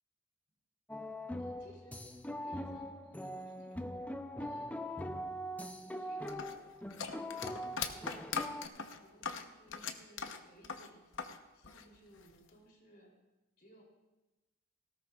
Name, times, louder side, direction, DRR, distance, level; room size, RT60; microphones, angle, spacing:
sound 1, 0.9-8.7, equal, 5° left, 0.5 m, -42 dB
voice 1, 1.4-2.0 2.4-4.0 4.4-4.9 5.9-6.5 7.3-11.1 11.5-13.1 13.6-13.8, equal, 45° left, -2 dB, 3.1 m, -60 dB
sound 2, 6.3-11.4 11.6-12.5, left 6 dB, 60° left, 0.8 m, -40 dB
18.5 x 16.5 x 2.4 m, 1.0 s
head